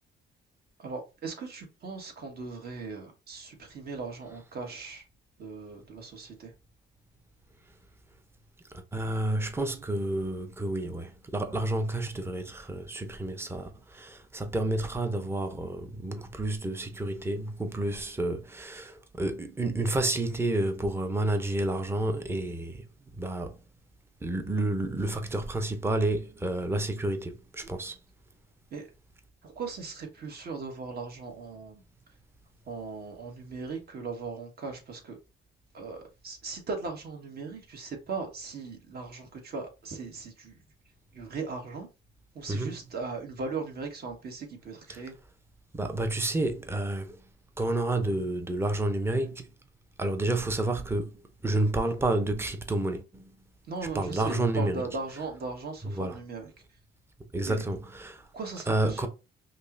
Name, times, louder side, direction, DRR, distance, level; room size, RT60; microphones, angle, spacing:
voice 1, 0.8-5.0 5.4-6.5 28.7-28.9 29.4-31.8 32.7-35.2 35.7-40.6 41.1-41.9 42.3-45.1 53.7-56.5 57.4-57.6 58.3-59.1, right 4 dB, 50° right, 1.3 m, -38 dB
voice 2, 8.9-22.8 23.2-23.6 24.2-27.9 42.5-42.7 44.9-45.0 45.7-47.2 47.6-49.5 50.0-51.1 51.4-53.2 53.9-54.8 55.9-56.2 57.3-58.2 58.7-59.1, right 2 dB, 10° right, 0.6 m, -30 dB
5.2 x 2.1 x 2.5 m
cardioid pair, 90°, 20 cm